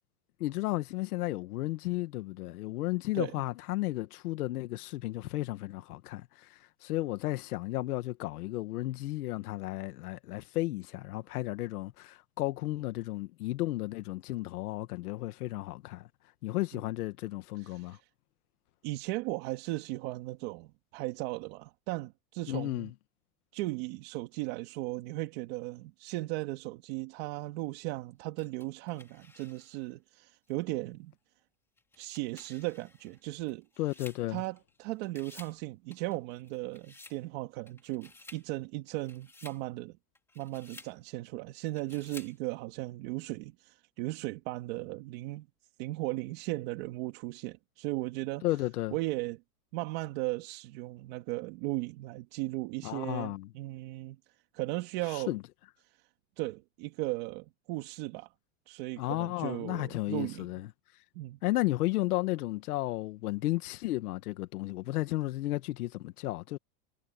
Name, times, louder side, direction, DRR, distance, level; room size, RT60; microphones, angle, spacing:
voice 1, 0.4-16.1 16.4-18.0 22.5-22.9 33.8-34.4 48.4-48.9 52.8-53.5 55.1-55.4 59.0-60.7 61.4-66.6, left 17 dB, 85° left, 1.5 m, -33 dB
voice 2, 17.6-18.1 18.8-22.9 23.5-31.1 32.0-33.7 34.3-40.0 40.4-45.5 45.8-48.4 48.9-49.4 49.7-54.2 54.5-55.3 55.8-56.1 56.4-58.3 58.7-60.5 61.1-61.4, right 20 dB, 45° right, 1.7 m, -37 dB
sound 1, 28.4-29.9 30.5-30.6 31.8-34.8 35.0-35.6 35.9-37.2 37.7-38.5 38.9-39.6 40.1-41.0 41.7-42.4, left 2 dB, 5° left, 2.5 m, -54 dB
supercardioid pair, 175°, 44 cm